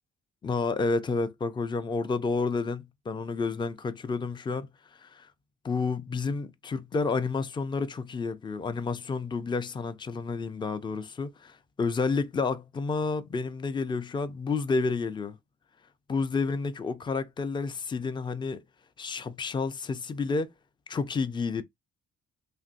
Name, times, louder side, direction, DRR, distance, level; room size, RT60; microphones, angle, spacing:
voice 1, 0.4-5.3 5.6-15.4 16.1-18.6 19.0-20.5 20.9-21.6, left 4 dB, 15° left, 0.3 m, -30 dB
3.0 x 2.6 x 2.4 m
cardioid pair, 90°, 30 cm